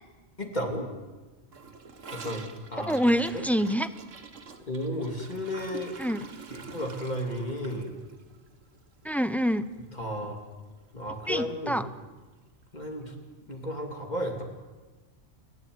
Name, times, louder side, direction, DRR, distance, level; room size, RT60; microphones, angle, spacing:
voice 1, 0.4-0.9 2.1-3.0 3.3-3.5 4.7-6.0 6.5-7.9 9.9-10.4 10.9-11.8 12.7-13.1 13.5-14.4, equal, 35° left, 3 dB, 2.9 m, -33 dB
Gurgling / Toilet flush, 1.5-9.8 10.0-10.2 10.5-10.9 11.2-11.3 11.6-11.7 12.6-12.7, right 5 dB, 85° right, 1.9 m, -47 dB
voice 2, 2.9-3.9 6.0-6.2 9.0-9.6 11.3-11.9, equal, ahead, 13 dB, 0.5 m, -26 dB
29.5 x 12.0 x 9.5 m, 1.3 s
omnidirectional pair, 1.3 m